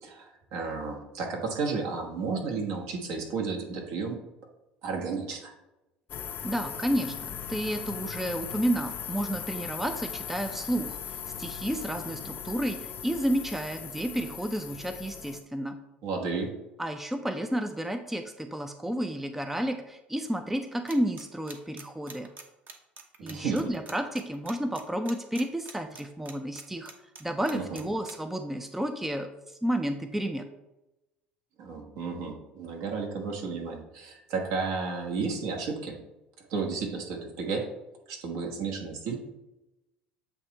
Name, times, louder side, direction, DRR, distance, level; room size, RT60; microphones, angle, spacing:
voice 1, 0.0-4.2 4.8-5.5 16.0-16.5 23.2-23.7 27.5-27.8 31.6-36.0 36.5-37.7 38.1-39.2, right 4 dB, 60° right, 1 dB, 1.3 m, -32 dB
sound 1, 6.1-15.4, left 8 dB, 40° left, 0.6 m, -38 dB
voice 2, 6.4-15.8 16.8-22.3 23.2-26.9 27.2-30.5, right 1 dB, 5° right, 8 dB, 0.5 m, -31 dB
sound 2, 20.9-28.1, right 4 dB, 35° right, 0.9 m, -45 dB
7.8 x 2.9 x 4.3 m, 0.96 s
figure-of-eight pair, 65°, 5 cm